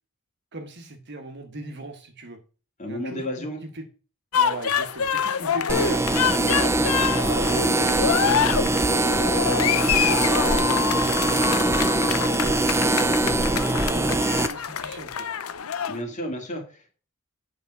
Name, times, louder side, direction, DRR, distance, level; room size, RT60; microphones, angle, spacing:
voice 1, 0.5-2.4 2.8-3.8 4.3-6.7 7.2-8.1 9.5-12.9 13.1-15.3, right 2 dB, 50° right, 6 dB, 1.4 m, -38 dB
voice 2, 2.8-3.6 15.9-17.0, equal, 35° left, 3 dB, 2.1 m, -32 dB
sound 1, 4.3-16.0, left 7 dB, 70° left, 0.6 m, -26 dB
sound 2, 5.7-14.5, right 2 dB, 10° right, 0.5 m, -22 dB
8.4 x 5.2 x 4.8 m, 0.36 s
head